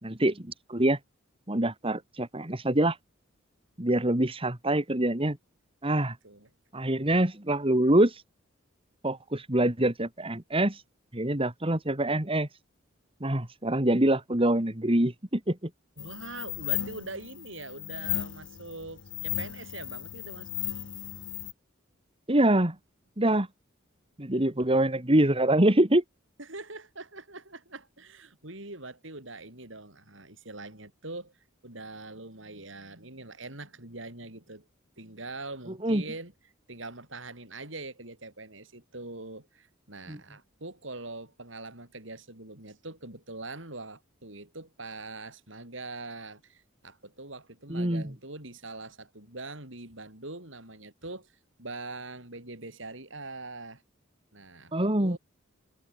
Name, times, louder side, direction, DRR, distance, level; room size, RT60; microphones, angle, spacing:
voice 1, 0.0-1.0 1.5-3.0 3.8-5.4 5.8-6.2 6.7-8.2 9.0-10.8 11.1-12.5 13.2-15.6 22.3-22.8 23.2-23.5 24.2-26.0 35.8-36.0 40.1-40.2 47.7-48.0 54.7-55.2, right 1 dB, 25° right, 2.3 m, -25 dB
sound 1, 16.0-21.5, left 12 dB, 65° left, 1.4 m, -35 dB
voice 2, 16.0-20.6 26.4-31.4 31.6-34.7 35.0-36.3 36.7-53.8 54.3-54.7 55.0-55.2, right 2 dB, 65° right, 6.7 m, -43 dB
head